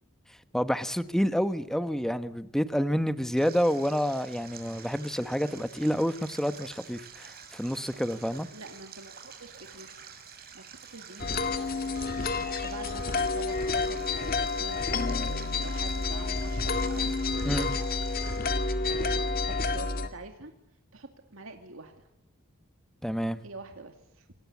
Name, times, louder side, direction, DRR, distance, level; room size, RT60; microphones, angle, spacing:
voice 1, 0.5-8.5 17.4-17.7 23.0-23.4, equal, ahead, 11 dB, 1.2 m, -28 dB
Stream, 3.4-18.4, right 7 dB, 50° right, 6.7 m, -48 dB
voice 2, 8.5-10.0 10.5-11.7 12.5-17.2 18.9-20.5 20.9-22.1 23.4-24.3, right 2 dB, 70° right, 5 dB, 2.5 m, -46 dB
sound 1, 11.2-20.1, left 3 dB, 45° left, 2.1 m, -29 dB
27.5 x 20.5 x 8.4 m, 0.87 s
head